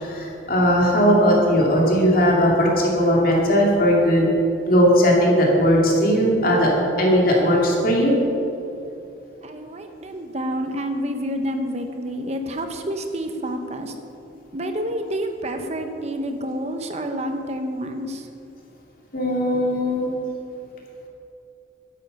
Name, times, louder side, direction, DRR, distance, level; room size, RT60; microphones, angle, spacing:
voice 1, 0.1-4.2 4.7-6.7 7.0-8.1 19.1-20.1, equal, 50° left, -2 dB, 2.4 m, -18 dB
voice 2, 9.4-13.9 14.5-18.3, equal, 35° right, 6 dB, 1.0 m, -28 dB
12.0 x 10.5 x 5.5 m, 2.7 s
head